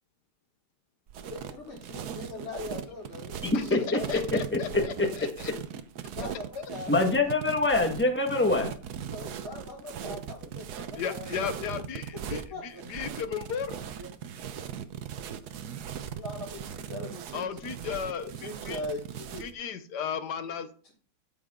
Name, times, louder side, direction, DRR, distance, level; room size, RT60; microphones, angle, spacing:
sound 1, 1.1-19.5, right 8 dB, 75° right, 1.4 m, -39 dB
voice 1, 1.2-4.2 6.1-7.1 9.1-11.6 12.3-12.8 14.0-14.1 16.1-17.5 18.4-19.5 20.8-20.9, left 2 dB, 55° left, -9 dB, 4.3 m, -40 dB
voice 2, 3.4-4.0 4.3-5.1 6.9-8.7, left 2 dB, 5° left, 3 dB, 1.6 m, -25 dB
voice 3, 4.1-5.5 6.6-6.7 11.0-12.4 12.9-13.7 17.3-18.8 19.4-20.7, left 7 dB, 85° left, 11 dB, 1.6 m, -35 dB
13.5 x 6.9 x 3.7 m, 0.42 s
omnidirectional pair, 1.7 m